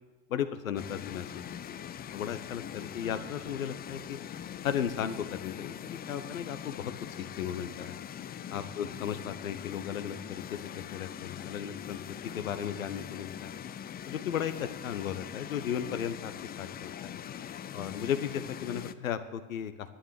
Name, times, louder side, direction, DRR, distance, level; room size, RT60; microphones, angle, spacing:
voice 1, 0.3-1.8 2.1-4.2 4.6-6.9 7.2-8.0 8.5-13.5 14.1-17.1 17.7-19.9, left 9 dB, 75° left, 11 dB, 1.0 m, -35 dB
sound 1, 0.8-18.9, left 9 dB, 25° left, 0.5 m, -42 dB
11.5 x 9.0 x 9.2 m, 1.2 s
figure-of-eight pair, 65°, 41 cm